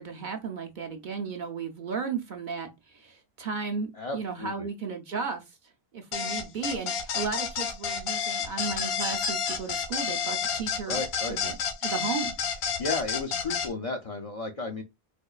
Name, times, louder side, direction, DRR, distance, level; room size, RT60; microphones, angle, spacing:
voice 1, 0.0-5.4 5.9-11.0 11.3-11.6 11.8-12.3, right 5 dB, 55° right, 0.7 m, -34 dB
voice 2, 3.9-4.7 10.9-11.4 12.8-14.8, left 3 dB, 50° left, 0.4 m, -33 dB
sound 1, 6.1-13.7, left 6 dB, 75° left, 0.9 m, -30 dB
4.3 x 2.2 x 2.3 m
omnidirectional pair, 1.0 m